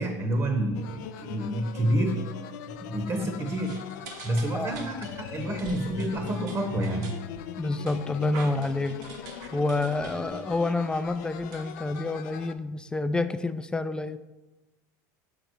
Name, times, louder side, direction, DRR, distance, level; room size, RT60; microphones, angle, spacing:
voice 1, 0.0-2.3 2.8-3.9 4.2-7.1, right 1 dB, 30° right, 5 dB, 0.9 m, -28 dB
sound 1, 0.7-12.5, left 10 dB, 75° left, 0.4 m, -41 dB
sound 2, 3.4-12.5, right 4 dB, 80° right, 1.0 m, -47 dB
voice 2, 7.6-9.0 9.5-14.2, left 2 dB, 10° left, 11 dB, 0.4 m, -28 dB
6.8 x 3.7 x 4.5 m, 1.1 s
supercardioid pair, 100°, 10 cm